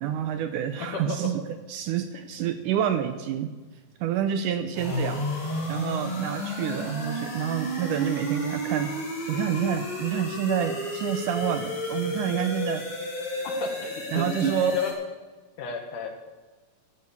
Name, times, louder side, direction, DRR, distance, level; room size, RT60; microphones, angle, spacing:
voice 1, 0.0-1.4 1.7-3.5 4.0-5.3 5.7-9.0 9.3-12.9 14.1-14.8, right 9 dB, 80° right, 9 dB, 2.0 m, -28 dB
voice 2, 0.8-1.2 4.9-5.0 13.4-14.9 15.6-16.1, left 6 dB, 70° left, 4 dB, 3.1 m, -33 dB
sound 1, 4.7-14.9, equal, 45° left, 4.5 m, -32 dB
12.5 x 8.8 x 7.2 m, 1.3 s
omnidirectional pair, 4.0 m